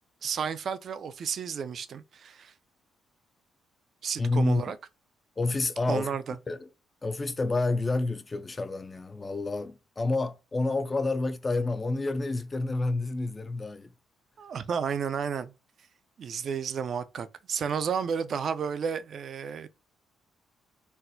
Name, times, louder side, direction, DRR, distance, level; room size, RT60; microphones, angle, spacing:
voice 1, 0.2-2.5 4.0-4.8 5.9-6.4 14.4-15.5 16.2-19.7, right 7 dB, 55° right, 0.4 m, -32 dB
voice 2, 4.2-4.7 5.4-6.2 6.5-6.7 7.0-13.9, left 2 dB, 25° left, 0.4 m, -29 dB
4.1 x 2.0 x 2.6 m
cardioid pair, 90°, 0 cm